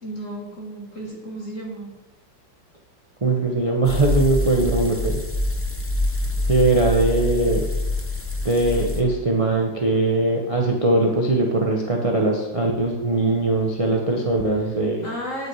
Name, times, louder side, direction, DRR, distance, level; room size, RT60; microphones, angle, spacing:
voice 1, 0.0-1.9 15.0-15.5, right 1 dB, 40° left, -3 dB, 2.8 m, -33 dB
voice 2, 3.2-5.2 6.5-7.6 8.4-15.1, right 2 dB, 25° right, 0 dB, 0.8 m, -21 dB
sound 1, 3.8-9.0, left 1 dB, 20° left, 0.3 m, -25 dB
9.0 x 8.2 x 4.7 m, 1.1 s
omnidirectional pair, 2.0 m